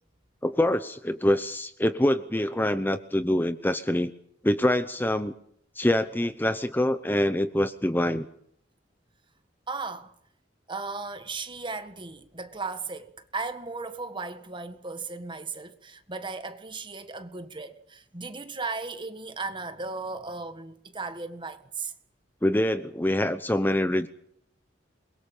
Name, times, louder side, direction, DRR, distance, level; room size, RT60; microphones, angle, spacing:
voice 1, 0.4-4.1 4.4-5.3 5.7-8.3 22.4-24.1, left 1 dB, 10° left, 0.8 m, -25 dB
voice 2, 9.7-10.1 10.7-21.9, right 3 dB, 25° right, 1.7 m, -36 dB
27.5 x 22.5 x 5.6 m
head